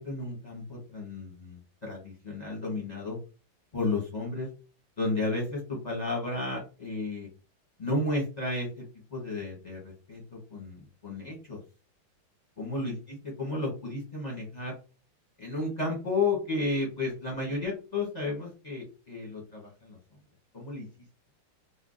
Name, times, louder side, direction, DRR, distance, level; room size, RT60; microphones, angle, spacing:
voice 1, 0.0-3.2 3.7-4.5 5.0-5.6 5.8-7.3 7.8-8.7 9.1-10.2 10.5-11.6 12.6-12.9 13.4-14.8 15.4-20.0 20.5-20.8, left 2 dB, 35° left, -3 dB, 0.7 m, -32 dB
4.4 x 2.1 x 2.5 m, 0.34 s
omnidirectional pair, 2.2 m